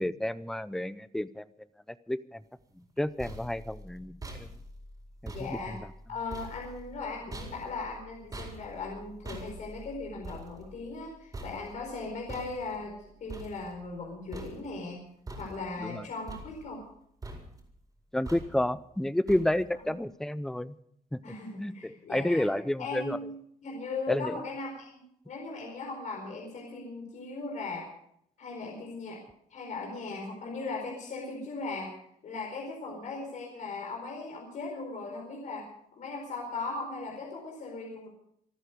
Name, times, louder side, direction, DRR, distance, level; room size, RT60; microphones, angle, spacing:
voice 1, 0.0-1.4 2.1-2.4 3.0-4.5 5.2-5.8 15.8-16.0 18.1-20.8 21.1-21.2 21.6-23.2 24.1-24.4, left 1 dB, 5° left, 16 dB, 0.5 m, -30 dB
sound 1, 2.8-14.1 14.3-14.9 15.3-15.9 16.3-17.0 17.2-17.7 18.3-18.8 19.3-19.8, right 1 dB, 25° right, 4.6 m, -45 dB
voice 2, 5.3-5.8 6.1-12.9 13.2-15.0 15.4-16.8 21.2-22.5 22.8-23.3 23.6-27.9 28.4-29.2 29.5-31.9 32.2-35.7 35.9-38.1, left 3 dB, 55° left, 0 dB, 4.6 m, -38 dB
28.0 x 9.3 x 5.2 m, 0.70 s
cardioid pair, 145°, 15 cm